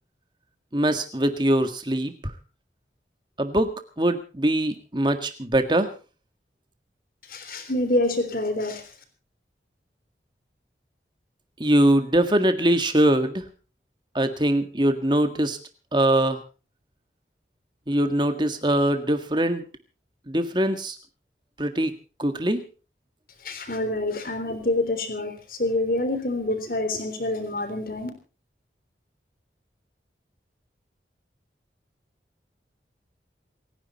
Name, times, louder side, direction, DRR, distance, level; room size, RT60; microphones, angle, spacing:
voice 1, 0.7-2.3 3.4-3.7 4.0-5.9 11.6-13.4 14.1-15.6 15.9-16.4 17.9-19.6 20.3-20.9 21.6-21.9 22.2-22.6, right 1 dB, 25° right, 8 dB, 1.7 m, -22 dB
voice 2, 7.3-8.8 23.4-28.1, left 2 dB, 50° left, 7 dB, 3.5 m, -26 dB
28.5 x 10.5 x 4.2 m, 0.36 s
head